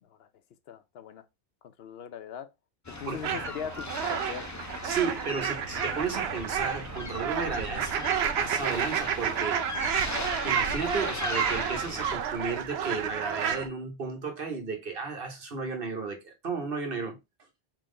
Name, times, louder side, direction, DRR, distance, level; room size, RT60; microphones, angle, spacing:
voice 1, 0.7-1.3 1.6-2.5 2.9-4.5, left 8 dB, 75° left, 0.8 m, -40 dB
sound 1, 2.8-12.2, left 2 dB, 25° left, 0.4 m, -38 dB
sound 2, 3.2-13.7, right 8 dB, 85° right, 0.8 m, -31 dB
voice 2, 4.8-8.1 8.4-10.0 10.4-17.2, right 4 dB, 65° right, 1.2 m, -33 dB
3.6 x 2.9 x 3.8 m
omnidirectional pair, 1.0 m